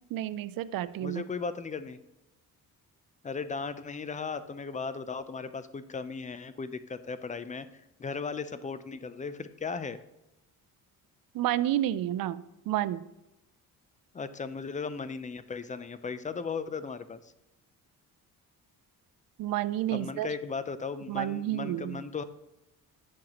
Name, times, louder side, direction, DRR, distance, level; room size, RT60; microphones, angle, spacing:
voice 1, 0.1-1.2 11.3-13.0 19.4-20.3 21.1-22.0, right 13 dB, 70° right, 15 dB, 0.5 m, -30 dB
voice 2, 1.0-2.0 3.2-7.7 8.0-10.0 14.1-17.3 19.9-22.2, left 5 dB, 20° left, 13 dB, 0.4 m, -36 dB
10.5 x 6.4 x 2.9 m, 0.93 s
cardioid pair, 110°, 36 cm